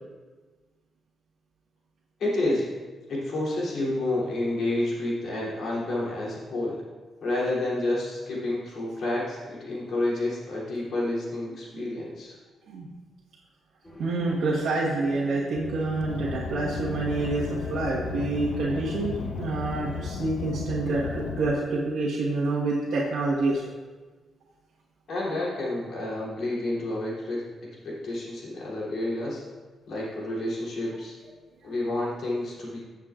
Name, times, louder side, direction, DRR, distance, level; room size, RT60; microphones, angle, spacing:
voice 1, 2.2-2.7 3.1-6.8 7.2-12.4 25.1-29.4 29.9-31.1 31.6-32.8, left 1 dB, 55° left, -5 dB, 3.0 m, -29 dB
sound 1, 13.8-20.6, equal, 20° left, 2.4 m, -42 dB
voice 2, 14.0-23.6, right 2 dB, 80° right, -7 dB, 1.4 m, -27 dB
Car, 16.0-21.5, left 7 dB, 80° left, 0.4 m, -35 dB
15.0 x 7.3 x 2.5 m, 1.4 s
cardioid pair, 155°, 0 cm